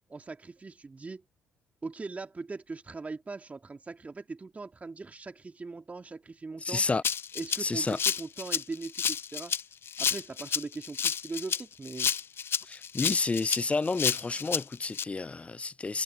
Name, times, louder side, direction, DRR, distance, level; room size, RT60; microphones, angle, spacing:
voice 1, 0.1-1.2 1.8-6.8 7.3-9.6 10.0-12.1, right 3 dB, 30° right, 2.9 m, -40 dB
voice 2, 6.6-7.0 7.6-8.0 12.7-16.0, left 3 dB, 25° left, 0.5 m, -30 dB
Rattle (instrument), 7.0-15.0, left 7 dB, 50° left, 0.9 m, -30 dB
hypercardioid pair, 50°, 5 cm